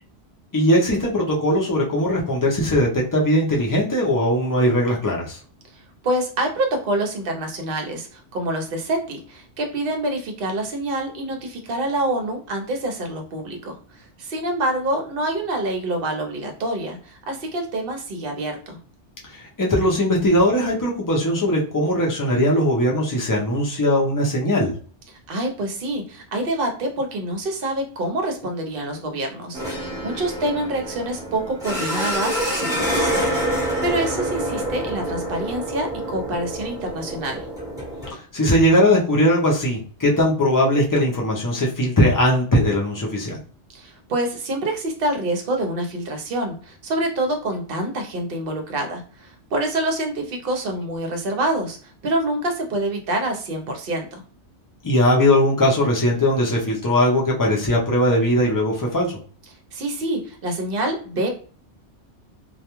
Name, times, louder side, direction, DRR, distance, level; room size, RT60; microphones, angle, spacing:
voice 1, 0.5-5.4 19.3-24.7 38.1-43.4 54.8-59.2, left 1 dB, 30° left, -3 dB, 0.3 m, -19 dB
voice 2, 6.0-13.8 14.2-18.8 25.3-37.5 43.7-54.2 59.7-61.3, right 1 dB, 60° right, 3 dB, 0.8 m, -26 dB
sound 1, 29.5-38.1, right 1 dB, 5° right, 0.8 m, -27 dB
2.3 x 2.2 x 2.9 m, 0.41 s
omnidirectional pair, 1.2 m